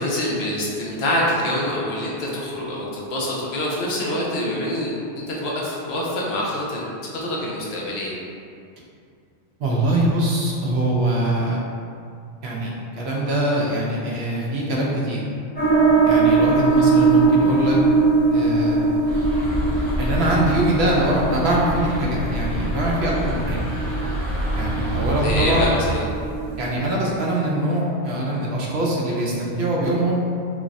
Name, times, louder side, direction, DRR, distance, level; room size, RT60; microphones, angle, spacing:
voice 1, 0.0-6.9 7.2-8.2 25.2-26.0, left 1 dB, 70° left, -4 dB, 0.8 m, -25 dB
voice 2, 9.6-11.6 12.4-15.2 16.0-17.8 18.3-18.9 20.0-23.6 24.5-25.6 26.6-30.2, right 1 dB, 75° right, -4 dB, 0.8 m, -23 dB
sound 1, 15.6-26.7, right 3 dB, 15° left, 0.4 m, -21 dB
sound 2, 19.1-25.7, equal, 50° right, 0.5 m, -27 dB
3.3 x 2.0 x 2.4 m, 2.4 s
omnidirectional pair, 1.2 m